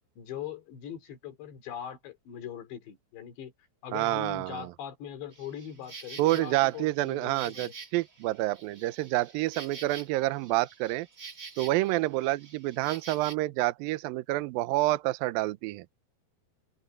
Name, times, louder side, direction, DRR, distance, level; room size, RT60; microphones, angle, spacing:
voice 1, 0.2-3.5 3.8-7.7, left 9 dB, 80° left, 5.4 m, -41 dB
voice 2, 3.9-4.7 6.2-11.1 11.6-15.9, right 18 dB, 85° right, 2.1 m, -28 dB
Insect, 5.3-13.3, right 4 dB, 40° right, 1.2 m, -47 dB
omnidirectional pair, 5.0 m